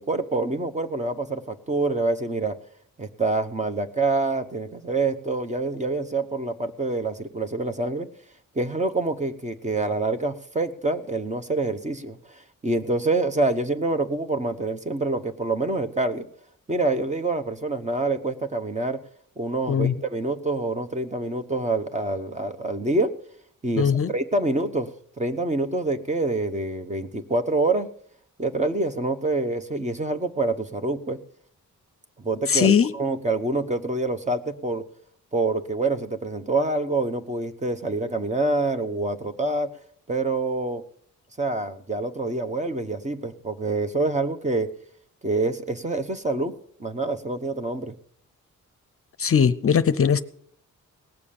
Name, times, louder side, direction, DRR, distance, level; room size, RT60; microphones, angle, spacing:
voice 1, 0.0-2.6 3.0-8.1 8.5-16.3 16.7-19.0 19.4-23.1 23.6-24.9 25.2-27.9 28.4-31.2 32.2-34.8 35.3-39.7 40.1-40.8 41.4-44.7 45.2-46.5 46.8-47.9, right 2 dB, 20° right, 1.0 m, -26 dB
voice 2, 23.8-24.1 32.5-32.9 49.2-50.2, left 7 dB, 45° left, 0.6 m, -20 dB
18.5 x 7.1 x 8.6 m
wide cardioid pair, 130°, 32 cm